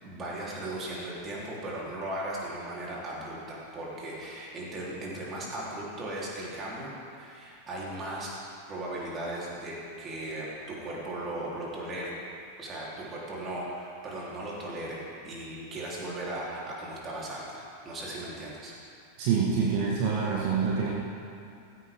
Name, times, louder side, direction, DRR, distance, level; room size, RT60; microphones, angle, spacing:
voice 1, 0.0-8.3 8.7-12.2 12.6-15.0 15.2-18.7, right 1 dB, 25° right, -5 dB, 3.9 m, -37 dB
voice 2, 19.2-20.9, right 6 dB, 45° right, -4 dB, 1.9 m, -26 dB
16.0 x 14.5 x 3.8 m, 2.5 s
figure-of-eight pair, 90°, 0 cm